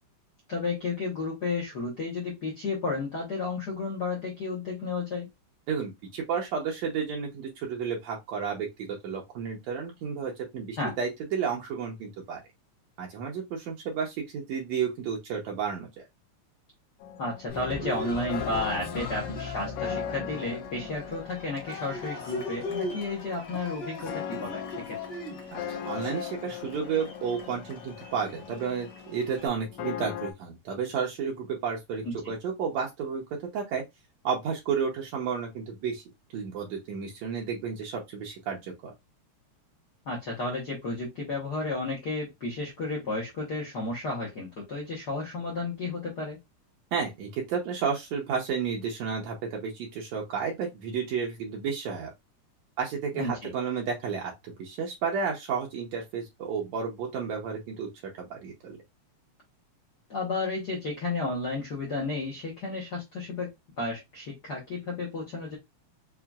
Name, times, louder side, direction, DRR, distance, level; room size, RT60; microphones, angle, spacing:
voice 1, 0.5-5.3 10.8-11.0 17.2-25.0 32.0-32.1 40.1-46.4 53.1-53.5 60.1-65.6, left 3 dB, 65° left, 1.0 m, -32 dB
voice 2, 5.7-12.4 13.0-16.0 25.5-33.2 33.5-33.8 34.2-36.0 36.3-38.9 46.9-52.1 52.8-54.3 54.6-57.9 58.2-58.8, right 6 dB, 75° right, 1.9 m, -32 dB
sound 1, 17.0-30.3, left 10 dB, 85° left, 1.4 m, -40 dB
Cheering, 17.5-29.5, left 2 dB, 50° left, 1.4 m, -38 dB
5.7 x 2.4 x 2.3 m
omnidirectional pair, 3.4 m